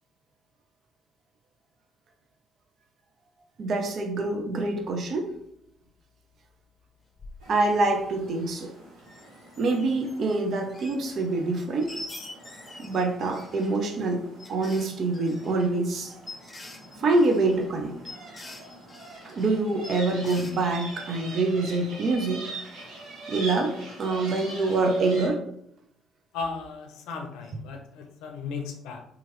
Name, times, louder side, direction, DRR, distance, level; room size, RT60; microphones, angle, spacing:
voice 1, 3.6-5.4 7.5-8.7 9.6-12.0 12.8-16.1 17.0-18.0 19.2-22.4 23.3-25.4, right 3 dB, 55° right, 4 dB, 0.6 m, -25 dB
sound 1, 7.2-7.4 7.8-7.9 8.2-8.3 9.0-10.4 10.7-11.3 11.5-13.8 14.4-19.5 19.8-20.6, left 2 dB, 25° left, 0.7 m, -45 dB
sound 2, 7.4-25.3, right 2 dB, 70° right, 1.2 m, -44 dB
voice 2, 26.3-29.0, left 5 dB, 75° left, 4 dB, 0.6 m, -36 dB
2.9 x 2.4 x 3.0 m, 0.73 s
hypercardioid pair, 55°, 0 cm